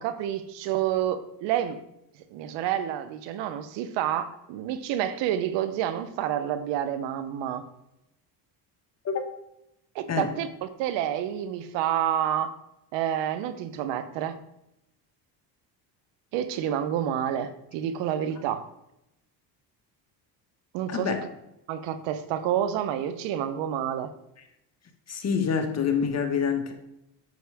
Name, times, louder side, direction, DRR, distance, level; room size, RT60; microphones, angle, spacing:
voice 1, 0.0-1.8 2.3-7.7 9.9-12.5 12.9-14.4 16.3-18.7 20.7-21.2 21.7-24.1, right 10 dB, 85° right, 12 dB, 0.9 m, -29 dB
voice 2, 20.9-21.2 25.1-26.7, left 6 dB, 35° left, 5 dB, 1.5 m, -26 dB
9.3 x 6.3 x 3.5 m, 0.84 s
cardioid pair, 95°, 42 cm